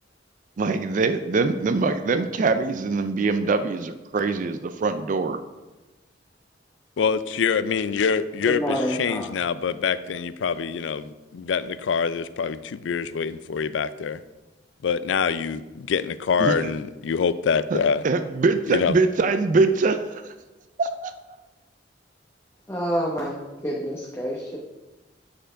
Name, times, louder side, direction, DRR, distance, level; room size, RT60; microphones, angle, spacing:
voice 1, 0.6-5.4 16.4-16.7 17.7-17.8 18.0-20.2 20.8-21.4, right 3 dB, 45° right, 10 dB, 0.4 m, -23 dB
voice 2, 7.0-14.2 14.8-18.0 18.7-18.9, left 6 dB, 85° left, 14 dB, 0.4 m, -25 dB
voice 3, 8.5-9.2 22.7-23.3 23.6-24.6, equal, 15° left, -3 dB, 0.9 m, -27 dB
7.7 x 4.4 x 5.0 m, 1.1 s
head